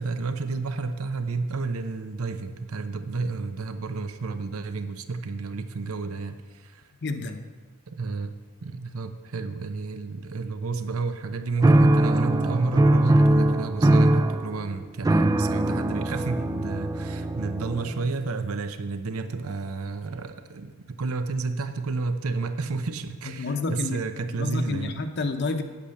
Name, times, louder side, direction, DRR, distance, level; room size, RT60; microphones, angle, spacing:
voice 1, 0.0-6.8 7.9-8.3 8.6-25.0, right 4 dB, 80° right, 9 dB, 0.7 m, -31 dB
voice 2, 7.0-7.5 23.2-24.0 24.3-25.6, left 3 dB, 50° left, 7 dB, 0.7 m, -29 dB
sound 1, 11.6-18.1, right 1 dB, 15° right, 0.3 m, -21 dB
8.6 x 8.5 x 6.5 m, 1.4 s
head